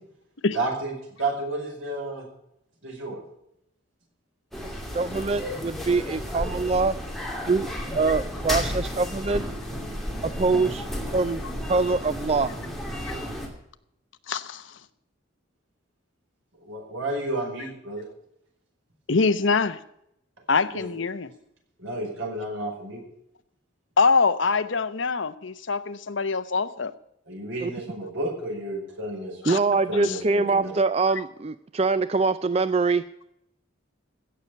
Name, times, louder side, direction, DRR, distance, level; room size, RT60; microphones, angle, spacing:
voice 1, 0.5-0.9 1.2-2.3 2.8-3.2 16.6-18.1 20.7-21.0 21.8-23.0 27.3-29.4 29.7-30.7, right 2 dB, 80° right, 0 dB, 5.3 m, -31 dB
sound 1, 4.5-13.5, equal, ahead, 2.5 m, -32 dB
voice 2, 4.9-7.0 7.5-7.7 7.9-9.4 10.2-10.9 11.1-11.4 11.7-12.5 27.6-27.7 29.5-33.0, right 3 dB, 30° right, 13 dB, 0.4 m, -24 dB
voice 3, 14.3-14.6 19.1-19.8 20.5-21.3 24.0-26.9 29.4-29.6 30.0-30.2, left 4 dB, 70° left, 13 dB, 0.9 m, -24 dB
16.5 x 6.8 x 8.4 m, 0.77 s
head